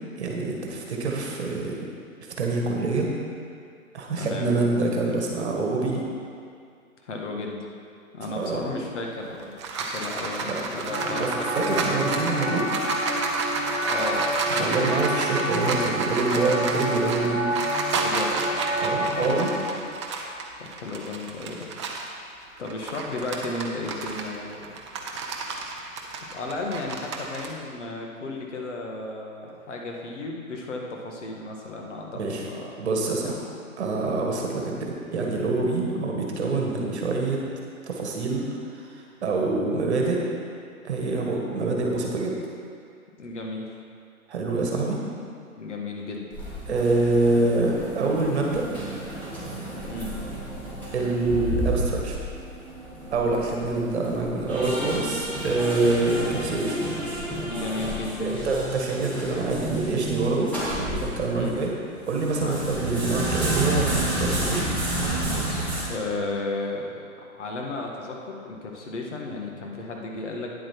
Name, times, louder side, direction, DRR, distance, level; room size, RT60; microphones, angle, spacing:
voice 1, 0.2-1.8 2.4-3.1 3.9-6.0 8.3-8.7 10.5-10.6 11.0-11.3 11.7-12.6 14.5-17.4 18.8-19.5 32.1-32.4 32.8-33.4 33.8-37.4 37.9-38.4 38.7-38.8 39.2-40.2 40.8-42.3 44.3-45.0 46.7-48.7 50.9-52.2 53.1-56.8 58.2-61.7 62.1-64.7, right 3 dB, 50° right, -1 dB, 1.7 m, -26 dB
voice 2, 4.2-4.6 7.0-7.6 8.1-9.5 9.8-11.3 11.6-12.0 13.8-15.0 18.0-18.6 19.4-19.6 20.6-21.7 22.6-24.7 26.3-32.7 33.2-33.3 34.6-34.7 43.2-43.8 45.6-46.2 49.9-50.1 57.4-58.5 61.3-61.6 62.3-62.6 65.2-67.0 67.3-70.5, left 2 dB, 55° left, 0 dB, 1.8 m, -34 dB
sound 1, 9.2-22.1 22.6-27.5, right 3 dB, 20° right, 0.6 m, -31 dB
sound 2, 10.9-19.6, right 1 dB, 30° left, 2.2 m, -28 dB
sound 3, 46.3-61.6 62.0-65.8, right 1 dB, 5° left, 2.0 m, -31 dB
9.4 x 7.7 x 4.6 m, 2.3 s
figure-of-eight pair, 130°, 42 cm